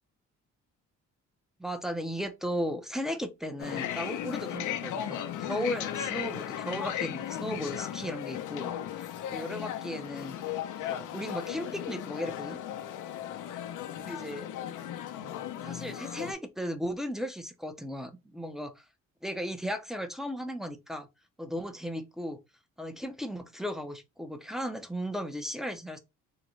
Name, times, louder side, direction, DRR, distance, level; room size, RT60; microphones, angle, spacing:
voice 1, 1.6-8.7 9.0-10.4 10.8-12.6 14.0-14.5 15.6-18.8 19.2-21.1 21.4-22.4 22.8-26.0, equal, ahead, 0.6 m, -36 dB
sound 1, 3.6-16.3, left 10 dB, 80° left, 0.7 m, -36 dB
3.8 x 2.2 x 3.0 m
cardioid pair, 90°, 30 cm